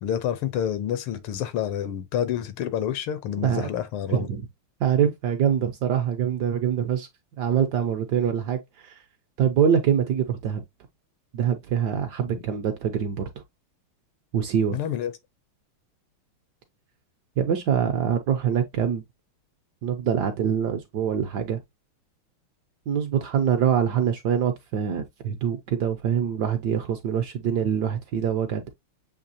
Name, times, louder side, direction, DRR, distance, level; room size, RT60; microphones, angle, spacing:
voice 1, 0.0-4.3 12.3-12.4 14.7-15.1, left 9 dB, 90° left, 1.6 m, -28 dB
voice 2, 3.4-3.7 4.1-4.5 4.8-7.1 7.4-9.0 9.4-10.6 11.3-13.3 14.3-14.8 17.4-19.0 19.8-21.6 22.9-28.7, right 8 dB, 70° right, 1.0 m, -24 dB
7.2 x 2.8 x 2.6 m
omnidirectional pair, 2.3 m